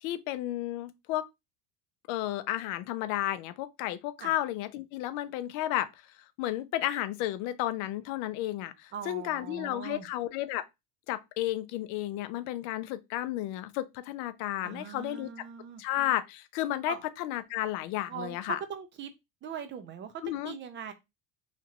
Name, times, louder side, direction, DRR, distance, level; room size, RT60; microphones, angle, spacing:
voice 1, 0.0-1.3 2.1-5.9 6.4-10.7 11.1-15.3 15.8-18.6 20.2-20.6, left 14 dB, 70° left, 0.5 m, -32 dB
voice 2, 8.9-10.1 14.6-15.8 16.8-17.0 18.1-19.1 19.4-20.9, right 7 dB, 35° right, 0.6 m, -40 dB
2.9 x 2.5 x 2.9 m
supercardioid pair, 115°, 31 cm